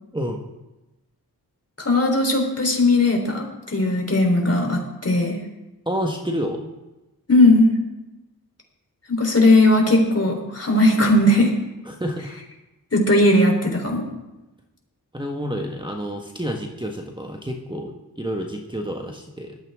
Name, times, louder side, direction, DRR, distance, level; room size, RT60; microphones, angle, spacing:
voice 1, 0.1-0.4 5.8-6.6 11.8-12.4 15.1-19.6, equal, 10° right, 2 dB, 1.5 m, -29 dB
voice 2, 1.8-5.4 7.3-7.7 9.1-11.5 12.9-14.0, left 1 dB, 40° left, 2 dB, 3.8 m, -18 dB
17.5 x 13.0 x 3.7 m, 1.0 s
wide cardioid pair, 60°, 38 cm